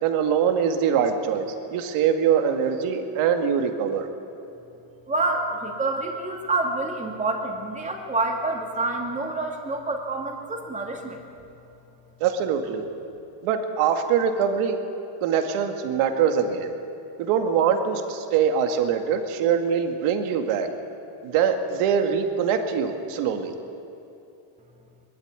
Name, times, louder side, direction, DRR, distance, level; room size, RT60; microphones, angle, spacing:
voice 1, 0.0-4.1 12.2-12.8 13.4-14.8 15.2-16.7 17.2-20.7 21.2-23.5, right 7 dB, 85° right, 5 dB, 2.2 m, -23 dB
voice 2, 5.1-11.2, right 2 dB, 15° right, 1 dB, 2.3 m, -27 dB
23.5 x 12.5 x 9.6 m, 2.9 s
cardioid pair, 165°, 50 cm